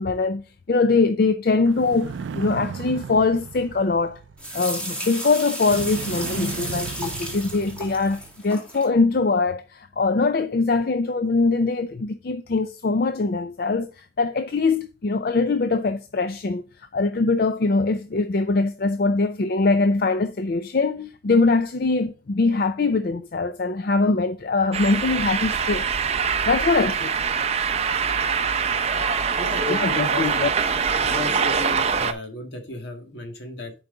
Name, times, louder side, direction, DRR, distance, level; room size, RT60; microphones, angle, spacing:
voice 1, 0.0-4.2 4.5-16.6 16.9-25.9 26.4-27.1 29.7-30.5, left 3 dB, 55° left, 0.5 m, -22 dB
sound 1, 1.6-4.7 5.6-8.4, right 6 dB, 90° right, 0.4 m, -35 dB
sound 2, 4.4-8.9, equal, 5° left, 1.9 m, -33 dB
sound 3, 24.7-32.1, right 6 dB, 35° right, 0.5 m, -24 dB
voice 2, 29.4-30.3 31.0-33.7, left 2 dB, 75° left, 1.9 m, -34 dB
10.5 x 4.7 x 3.8 m
head